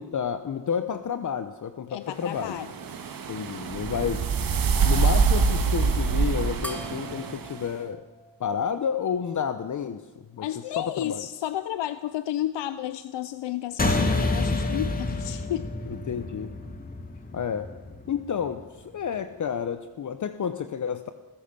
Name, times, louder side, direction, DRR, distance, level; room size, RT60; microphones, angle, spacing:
voice 1, 0.0-2.6 3.3-4.2 4.8-8.0 8.4-10.0 10.3-10.5 10.8-11.2 16.1-16.5 17.3-17.7 18.1-21.1, left 7 dB, 45° left, 10 dB, 1.0 m, -30 dB
voice 2, 1.9-2.7 10.4-15.7, left 12 dB, 90° left, 12 dB, 0.8 m, -32 dB
sound 1, 2.3-7.6, right 5 dB, 55° right, 2.0 m, -25 dB
sound 2, 6.6-9.4, equal, 5° left, 2.0 m, -43 dB
sound 3, 13.8-18.6, left 2 dB, 20° left, 2.6 m, -28 dB
28.0 x 16.0 x 6.9 m, 1.2 s
cardioid pair, 130°, 41 cm